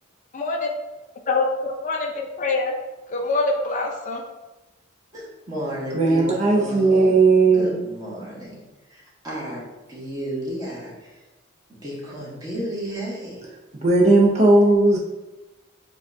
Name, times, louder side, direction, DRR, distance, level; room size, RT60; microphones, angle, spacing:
voice 1, 0.3-0.7 1.3-2.7 3.1-4.2, left 3 dB, 40° left, 3 dB, 0.4 m, -24 dB
voice 2, 5.1-7.1 7.5-8.6 8.9-11.2 11.7-13.4, equal, 20° right, -5 dB, 1.1 m, -33 dB
voice 3, 5.9-7.8 13.8-15.0, right 3 dB, 35° right, -3 dB, 0.5 m, -16 dB
6.8 x 2.3 x 2.6 m, 1.1 s
head